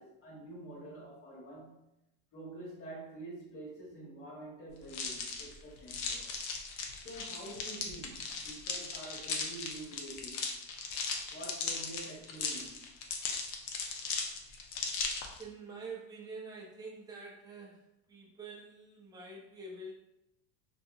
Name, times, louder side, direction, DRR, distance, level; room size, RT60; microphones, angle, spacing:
voice 1, 0.0-1.8 2.3-6.3 7.0-10.4 11.3-12.8, right 2 dB, 30° left, -4 dB, 1.2 m, -47 dB
sound 1, 4.9-15.4, left 5 dB, 55° left, 0.6 m, -38 dB
voice 2, 15.4-19.9, right 3 dB, 10° right, -3 dB, 0.4 m, -46 dB
2.8 x 2.7 x 2.4 m, 0.85 s
supercardioid pair, 125°, 45 cm